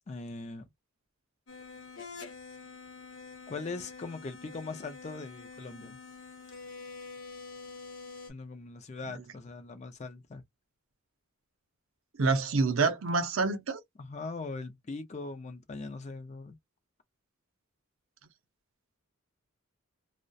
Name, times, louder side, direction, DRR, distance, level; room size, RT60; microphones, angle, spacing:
voice 1, 0.1-0.7 3.5-6.0 8.3-10.4 14.0-16.6, left 3 dB, 30° left, 0.4 m, -40 dB
sound 1, 1.5-8.3, left 4 dB, 60° left, 0.8 m, -46 dB
voice 2, 12.2-13.8, right 4 dB, 65° right, 0.6 m, -27 dB
2.3 x 2.1 x 2.6 m
head